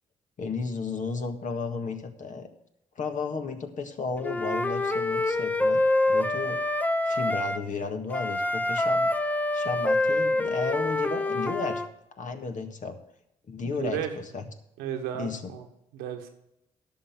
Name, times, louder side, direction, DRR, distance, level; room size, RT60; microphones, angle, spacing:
voice 1, 0.4-2.5 2.9-5.8 6.1-6.6 7.0-9.1 9.5-11.8 12.2-13.0 13.5-14.4 15.1-15.4, left 4 dB, 55° left, 6 dB, 1.7 m, -33 dB
Wind instrument woodwind instrument, 4.2-7.6 8.1-11.9, left 2 dB, 10° left, 0.9 m, -26 dB
voice 2, 13.6-14.1 14.8-15.6 15.9-16.3, right 9 dB, 80° right, 5 dB, 1.3 m, -34 dB
11.0 x 6.2 x 7.5 m, 0.84 s
hypercardioid pair, 40°, 16 cm